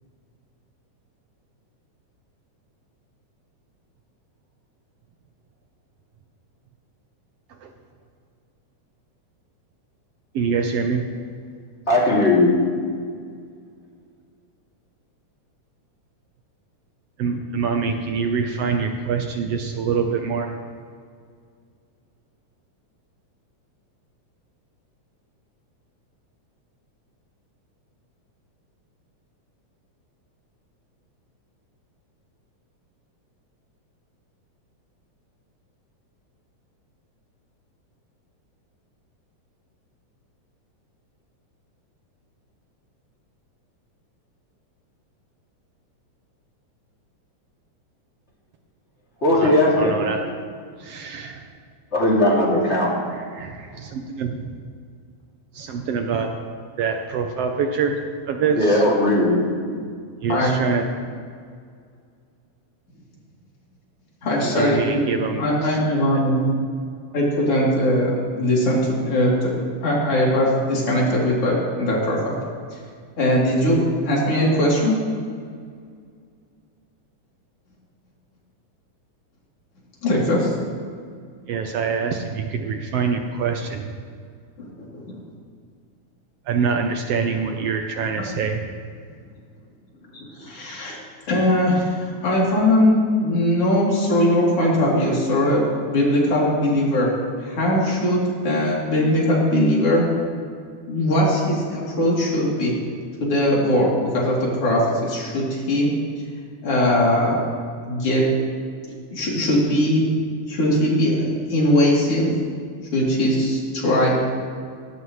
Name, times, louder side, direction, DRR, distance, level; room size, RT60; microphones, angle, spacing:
voice 1, 10.3-11.1 17.2-20.5 49.3-50.4 50.8-51.4 53.3-54.6 55.5-56.4 56.8-58.0 58.3-58.8 60.2-61.2 64.4-65.5 66.1-66.3 81.5-83.9 86.5-88.6, right 5 dB, 70° right, 4 dB, 1.5 m, -25 dB
voice 2, 11.9-12.5 49.2-49.9 51.9-52.9 58.5-59.4, left 1 dB, 20° left, -4 dB, 2.8 m, -18 dB
voice 3, 64.2-66.5 67.1-69.5 69.8-72.2 73.2-74.9 80.0-80.5 84.6-85.2 90.1-91.0 91.3-95.6 95.9-97.1 97.4-98.2 98.4-100.1 100.9-102.7 103.2-103.9 104.1-105.9 106.6-107.4 107.9-108.3 109.1-110.0 110.5-112.3 112.9-114.2, left 1 dB, 50° left, -4 dB, 4.1 m, -20 dB
17.5 x 16.5 x 3.2 m, 2.1 s
omnidirectional pair, 3.5 m